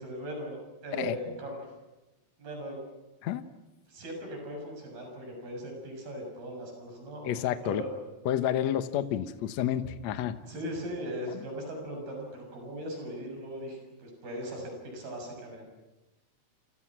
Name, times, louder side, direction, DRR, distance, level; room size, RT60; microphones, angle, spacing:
voice 1, 0.0-1.7 2.4-2.8 3.9-7.3 7.6-8.0 10.4-15.7, equal, 85° right, 2 dB, 8.9 m, -39 dB
voice 2, 7.3-7.8 8.3-10.4 11.3-11.4, left 10 dB, 60° left, 10 dB, 2.0 m, -30 dB
30.0 x 29.0 x 6.2 m, 1.0 s
omnidirectional pair, 4.2 m